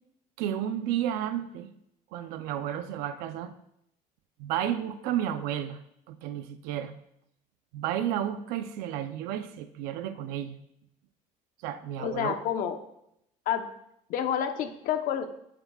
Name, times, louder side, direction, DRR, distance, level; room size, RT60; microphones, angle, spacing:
voice 1, 0.4-1.7 2.1-3.5 4.4-5.8 6.1-6.9 7.7-10.6 11.6-12.4, right 10 dB, 90° right, 10 dB, 0.7 m, -32 dB
voice 2, 12.0-12.8 13.5-13.7 14.1-15.3, left 9 dB, 70° left, 7 dB, 1.0 m, -29 dB
18.0 x 7.6 x 2.4 m, 0.77 s
cardioid pair, 115°, 15 cm